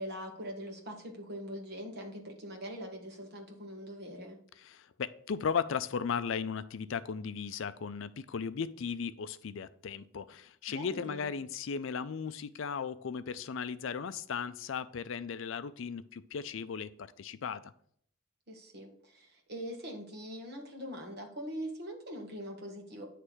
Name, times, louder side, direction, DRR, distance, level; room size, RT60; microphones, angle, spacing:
voice 1, 0.0-4.4 10.7-11.3 18.5-23.1, equal, 50° right, 2 dB, 1.6 m, -42 dB
voice 2, 4.6-17.7, left 6 dB, 65° left, 14 dB, 0.4 m, -36 dB
9.7 x 3.3 x 6.2 m, 0.64 s
head